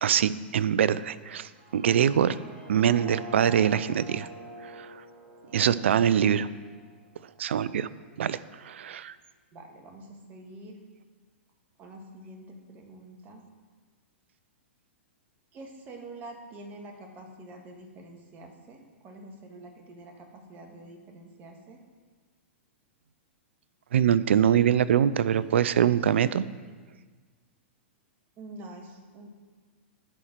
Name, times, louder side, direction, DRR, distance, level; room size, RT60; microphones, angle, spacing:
voice 1, 0.0-2.3 2.7-4.3 4.8-4.9 5.5-6.5 7.4-7.9 8.2-8.4 8.6-9.1 23.9-26.4, right 9 dB, 75° right, 17 dB, 0.4 m, -23 dB
sound 1, 1.4-7.4, right 1 dB, 50° right, 2.9 m, -46 dB
voice 2, 9.5-10.8 11.8-13.4 15.5-21.8 28.4-29.3, right 2 dB, 30° right, 2 dB, 1.6 m, -46 dB
10.5 x 4.3 x 7.5 m, 1.5 s
hypercardioid pair, 120°, 6 cm